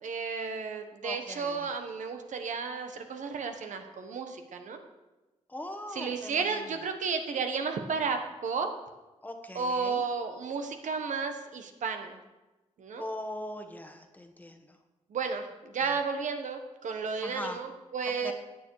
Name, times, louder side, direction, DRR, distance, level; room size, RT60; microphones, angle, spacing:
voice 1, 0.0-4.8 5.9-8.7 9.5-12.2 12.8-13.1 15.1-18.3, right 5 dB, 75° right, 6 dB, 1.3 m, -33 dB
voice 2, 1.0-1.6 5.5-6.6 9.2-10.0 13.0-14.5 17.2-17.6 18.2-18.3, left 1 dB, 15° left, 5 dB, 1.2 m, -40 dB
16.0 x 9.3 x 4.8 m, 1.1 s
wide cardioid pair, 140°, 13 cm